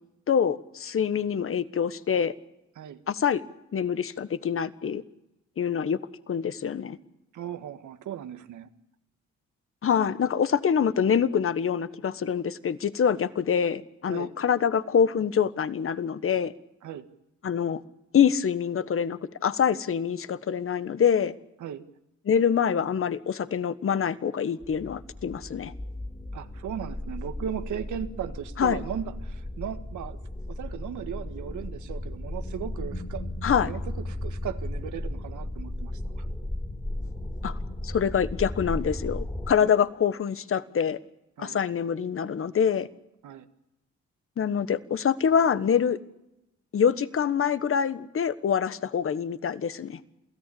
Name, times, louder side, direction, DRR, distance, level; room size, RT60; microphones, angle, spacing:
voice 1, 0.3-2.3 3.1-3.4 3.7-5.0 5.6-6.0 6.3-7.0 9.8-16.5 17.4-17.8 18.1-21.3 22.3-25.7 28.6-28.8 33.4-33.7 37.4-37.6 37.8-41.0 41.4-42.9 44.4-46.0 46.7-50.0, left 7 dB, 45° left, 14 dB, 1.4 m, -25 dB
voice 2, 7.3-8.7 14.1-14.3 16.8-17.1 21.6-21.9 26.3-30.2 30.5-33.3 33.6-36.3 39.6-39.8 41.4-41.6 43.2-43.5, right 9 dB, 75° right, 9 dB, 1.8 m, -37 dB
sound 1, 24.6-39.5, left 1 dB, 10° left, 3.3 m, -35 dB
28.0 x 17.0 x 8.6 m, 0.90 s
cardioid pair, 90°, 30 cm